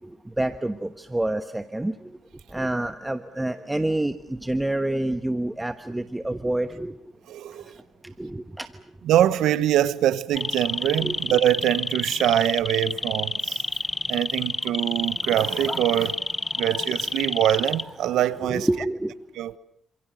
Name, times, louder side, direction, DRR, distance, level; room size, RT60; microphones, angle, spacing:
voice 1, 0.0-2.2 2.5-7.0 7.5-7.7 8.0-8.8 11.0-11.2 18.1-19.2, right 1 dB, 10° right, 1.2 m, -28 dB
voice 2, 7.3-7.8 9.0-13.6 14.1-16.2 16.6-18.7 19.4-19.6, right 12 dB, 80° right, 1.1 m, -23 dB
sound 1, 10.4-18.2 18.5-18.9, left 2 dB, 20° left, 1.0 m, -29 dB
28.0 x 27.5 x 6.5 m
cardioid pair, 90°, 0 cm